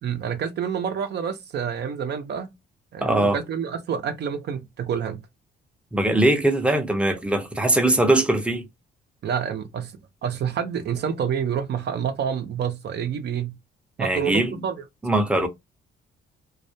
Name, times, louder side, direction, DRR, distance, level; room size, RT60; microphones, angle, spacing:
voice 1, 0.0-2.5 2.9-5.2 7.1-7.2 9.2-9.9 10.2-13.6 14.0-14.8, right 7 dB, 60° right, 0.6 m, -28 dB
voice 2, 3.0-3.4 5.9-8.6 14.0-14.6 15.0-15.5, right 1 dB, 5° right, 0.6 m, -21 dB
2.3 x 2.1 x 2.6 m
cardioid pair, 90°, 20 cm